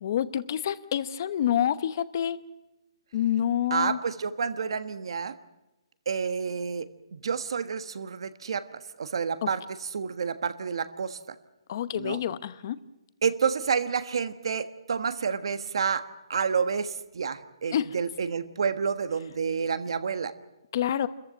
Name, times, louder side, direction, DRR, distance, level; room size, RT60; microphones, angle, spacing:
voice 1, 0.0-2.4 3.1-4.0 9.4-9.5 11.7-12.8 17.7-17.9 20.7-21.1, left 10 dB, 35° left, 14 dB, 0.9 m, -27 dB
voice 2, 3.7-5.3 6.1-8.6 9.0-11.2 11.9-12.2 13.2-20.3, right 6 dB, 60° right, 11 dB, 1.4 m, -29 dB
28.5 x 14.5 x 8.8 m, 1.0 s
hypercardioid pair, 170°, 3 cm